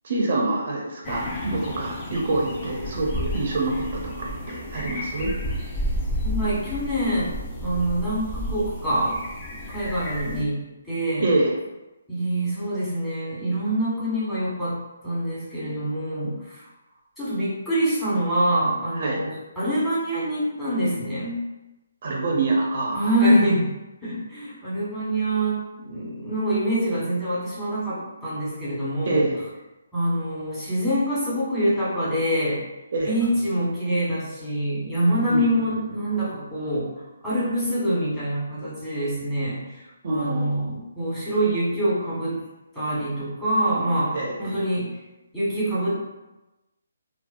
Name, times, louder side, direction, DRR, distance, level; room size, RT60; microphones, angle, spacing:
voice 1, 0.0-5.3 11.2-11.5 19.0-19.2 22.0-23.1 29.0-29.3 32.9-33.2 35.3-35.5 40.0-40.7 44.1-44.4, right 2 dB, 55° right, -1 dB, 0.4 m, -26 dB
sound 1, 1.0-10.4, equal, 25° left, 0.5 m, -31 dB
voice 2, 6.2-9.2 9.7-10.6 10.8-11.3 12.1-14.8 15.0-16.6 17.2-19.3 19.6-21.4 22.9-23.7 24.0-29.3 29.9-32.6 33.0-42.4 42.7-44.9 45.3-46.0, right 1 dB, 5° left, -13 dB, 1.2 m, -25 dB
2.5 x 2.2 x 2.4 m, 1.0 s
figure-of-eight pair, 145°, 0 cm